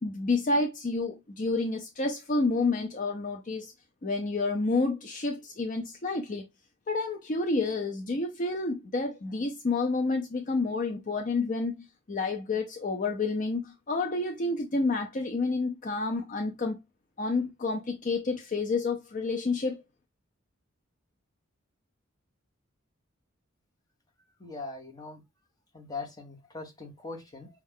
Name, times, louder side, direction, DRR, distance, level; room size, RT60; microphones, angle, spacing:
voice 1, 0.0-3.7 4.0-6.4 6.9-11.7 12.1-16.8 17.2-19.8, left 3 dB, 40° left, 0.5 m, -29 dB
voice 2, 24.4-25.2 25.7-27.5, left 3 dB, 20° left, 1.0 m, -40 dB
5.4 x 2.4 x 3.5 m
head